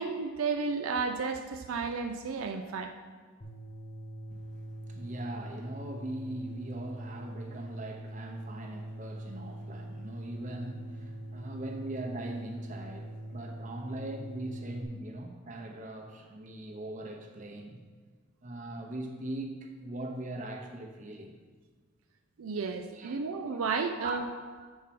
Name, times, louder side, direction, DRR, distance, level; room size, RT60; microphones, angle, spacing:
voice 1, 0.0-2.9 22.4-24.2, right 4 dB, 80° right, 6 dB, 0.4 m, -32 dB
sound 1, 3.4-14.8, right 1 dB, 45° left, 1.2 m, -43 dB
voice 2, 4.3-17.9 18.4-21.4 22.9-23.2 23.5-24.7, right 1 dB, 35° right, 2 dB, 0.8 m, -41 dB
7.2 x 4.7 x 5.9 m, 1.5 s
head